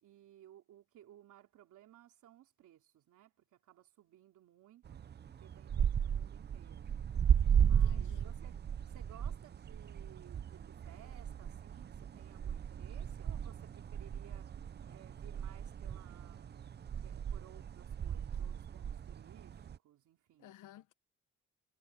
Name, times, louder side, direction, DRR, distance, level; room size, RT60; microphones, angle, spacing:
voice 1, 0.0-5.0 5.4-6.9 7.6-14.5 14.9-16.7 17.0-20.5, right 12 dB, 80° right, 3.1 m, -60 dB
sound 1, 4.9-19.8, right 8 dB, 35° right, 0.6 m, -35 dB
voice 2, 7.6-8.4 20.4-20.9, left 12 dB, 85° left, 1.3 m, -55 dB
cardioid pair, 90°, 30 cm